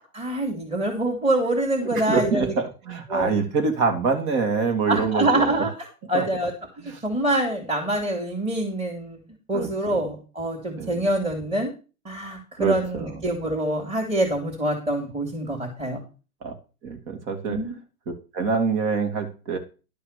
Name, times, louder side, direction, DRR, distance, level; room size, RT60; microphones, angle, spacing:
voice 1, 0.1-2.5 3.1-3.3 4.9-5.7 6.1-6.5 7.0-9.2 9.5-11.7 12.0-16.0 17.5-17.7, right 1 dB, 10° right, 0 dB, 3.0 m, -25 dB
voice 2, 2.1-5.4 6.1-6.2 9.5-10.0 10.8-10.9 12.6-13.1 16.4-16.5 16.8-17.6 18.1-19.6, right 5 dB, 35° right, 5 dB, 3.0 m, -25 dB
11.5 x 5.5 x 6.8 m, 0.34 s
hypercardioid pair, 125°, 45 cm